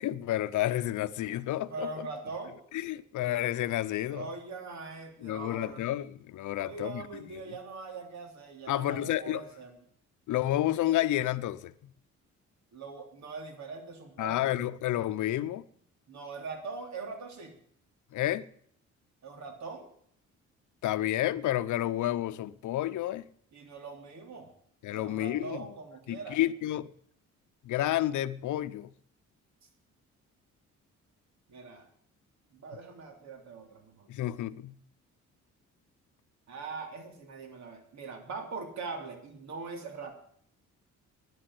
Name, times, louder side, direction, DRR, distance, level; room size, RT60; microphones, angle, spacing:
voice 1, 0.0-2.1 2.7-4.3 5.2-7.5 8.7-9.4 10.3-11.9 14.2-15.7 18.1-18.5 20.8-23.3 24.8-25.7 26.1-26.9 27.6-28.9 34.1-34.8, left 13 dB, 75° left, 0.8 m, -30 dB
voice 2, 1.7-2.6 4.1-5.9 6.6-9.7 12.7-14.5 16.1-17.5 19.2-19.9 23.5-24.5 24.9-26.4 31.5-31.9 32.5-34.1 36.5-40.1, right 4 dB, 65° right, 3.2 m, -42 dB
11.5 x 10.0 x 8.9 m
cardioid pair, 90°, 30 cm